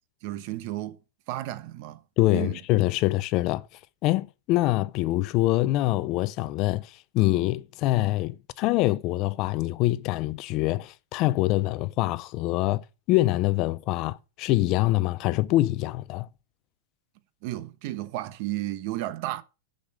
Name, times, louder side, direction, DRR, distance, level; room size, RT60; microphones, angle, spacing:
voice 1, 0.2-1.0 1.3-2.0 2.3-2.6 17.4-19.4, right 15 dB, 50° right, 1.0 m, -33 dB
voice 2, 2.2-3.7 4.0-16.3, left 17 dB, 40° left, 0.5 m, -25 dB
7.1 x 6.5 x 6.5 m
supercardioid pair, 150°, 0 cm